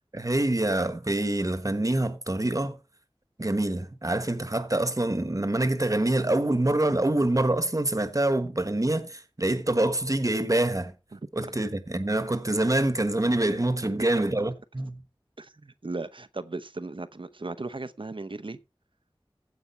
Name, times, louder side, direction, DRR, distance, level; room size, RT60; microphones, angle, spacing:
voice 1, 0.1-2.8 3.4-10.9 11.3-15.0, right 1 dB, 35° right, 1.3 m, -26 dB
voice 2, 15.4-18.6, right 3 dB, 60° right, 0.8 m, -37 dB
15.5 x 5.3 x 4.4 m
wide cardioid pair, 45°, 10 cm